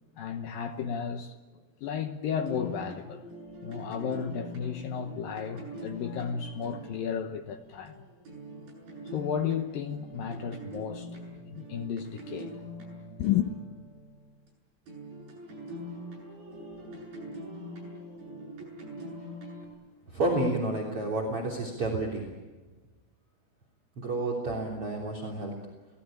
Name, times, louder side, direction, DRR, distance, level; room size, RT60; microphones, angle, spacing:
voice 1, 0.2-1.4 1.8-3.2 3.6-8.0 9.1-11.1 11.5-12.5 13.2-13.5, left 8 dB, 70° left, 2.2 m, -33 dB
sound 1, 2.4-14.5 14.9-19.7, equal, 55° right, 9.8 m, -43 dB
voice 2, 20.1-22.3 24.0-25.5, right 2 dB, 35° right, 3.9 m, -30 dB
28.0 x 18.5 x 8.9 m
omnidirectional pair, 5.1 m